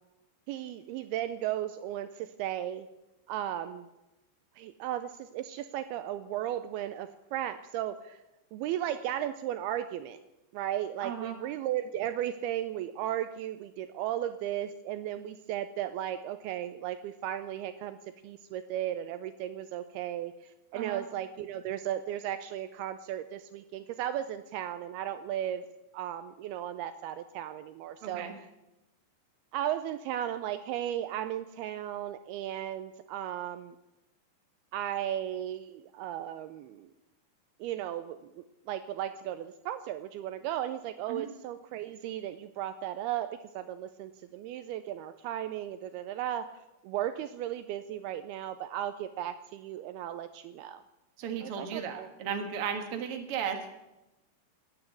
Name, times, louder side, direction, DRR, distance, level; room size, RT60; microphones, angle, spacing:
voice 1, 0.5-2.9 3.3-3.9 4.6-8.2 8.5-10.2 10.5-18.0 18.2-25.6 25.9-28.3 29.5-33.8 34.7-36.9 37.6-46.5 46.8-50.8 51.4-52.1, right 11 dB, 80° right, 11 dB, 2.5 m, -35 dB
voice 2, 11.0-11.4 20.7-21.0 28.0-28.4 41.1-41.3 51.2-53.7, right 7 dB, 50° right, 4 dB, 1.9 m, -35 dB
18.5 x 9.3 x 8.0 m, 0.97 s
omnidirectional pair, 4.8 m